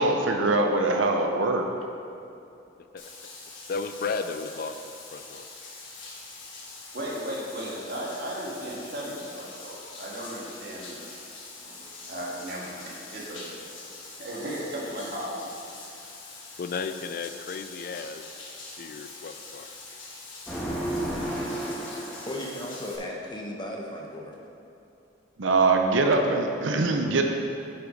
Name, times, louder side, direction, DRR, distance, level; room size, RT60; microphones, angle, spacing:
voice 1, 0.0-1.7 25.4-27.2, right 3 dB, 80° right, 3 dB, 0.7 m, -23 dB
Bathtub (filling or washing), 3.0-23.0, left 3 dB, 85° left, 1.4 m, -44 dB
voice 2, 3.7-4.7 5.1-5.4 16.6-18.3 18.8-19.7, left 5 dB, 50° left, 9 dB, 0.3 m, -34 dB
voice 3, 6.9-11.0 11.6-11.7 12.1-13.6 14.2-15.5, equal, 55° right, -5 dB, 1.8 m, -35 dB
sound 1, 20.5-22.8, right 1 dB, 5° left, 1.4 m, -32 dB
voice 4, 22.3-24.4, left 1 dB, 25° left, -1 dB, 0.8 m, -35 dB
7.7 x 5.8 x 5.1 m, 2.7 s
head